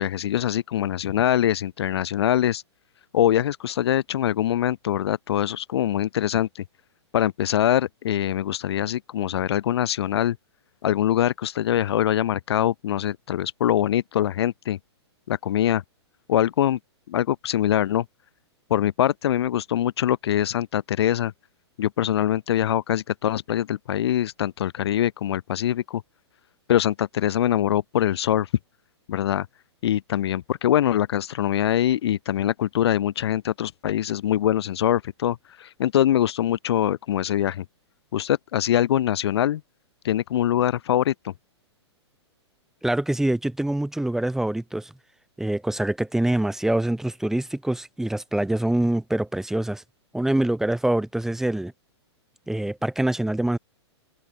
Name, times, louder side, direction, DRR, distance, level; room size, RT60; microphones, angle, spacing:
voice 1, 0.0-2.6 3.1-6.6 7.1-10.4 10.8-14.8 15.3-15.8 16.3-16.8 17.1-18.1 18.7-21.3 21.8-26.0 26.7-28.5 29.1-29.5 29.8-37.6 38.1-39.6 40.0-41.3, left 11 dB, 65° left, 0.4 m, -23 dB
voice 2, 42.8-44.9 45.4-49.8 50.1-51.7 52.5-53.6, right 1 dB, 5° right, 0.8 m, -25 dB
hypercardioid pair, 120°, 15 cm